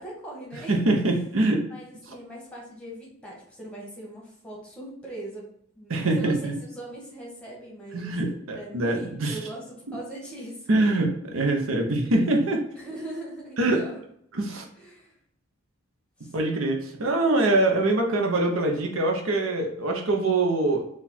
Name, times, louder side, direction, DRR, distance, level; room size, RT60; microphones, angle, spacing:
voice 1, 0.0-0.8 1.7-5.5 5.7-10.9 12.7-14.0 14.7-15.1 16.2-16.4, right 1 dB, 5° left, -4 dB, 1.2 m, -40 dB
voice 2, 0.7-1.6 5.9-6.5 7.9-9.3 10.7-12.6 13.6-13.8 14.4-14.6 16.3-20.8, right 2 dB, 75° right, 2 dB, 0.7 m, -24 dB
4.1 x 2.4 x 4.2 m, 0.67 s
head